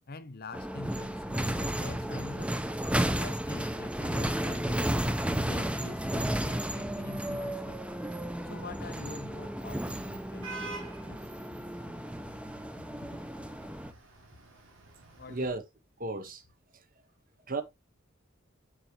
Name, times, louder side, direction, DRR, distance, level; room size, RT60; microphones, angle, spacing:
voice 1, 0.1-2.6 3.2-5.0 5.5-7.8 8.4-11.2 13.0-13.1 15.2-15.5, left 3 dB, 50° left, 0.9 m, -45 dB
sound 1, 0.5-13.9, right 1 dB, 5° right, 0.7 m, -33 dB
Vehicle horn car horn honking / Traffic noise roadway noise, 4.4-15.5, right 3 dB, 80° right, 3.1 m, -50 dB
voice 2, 15.3-15.6 16.0-16.4 16.7-16.8 17.5-17.6, right 3 dB, 45° right, 1.2 m, -34 dB
7.4 x 6.9 x 2.9 m
head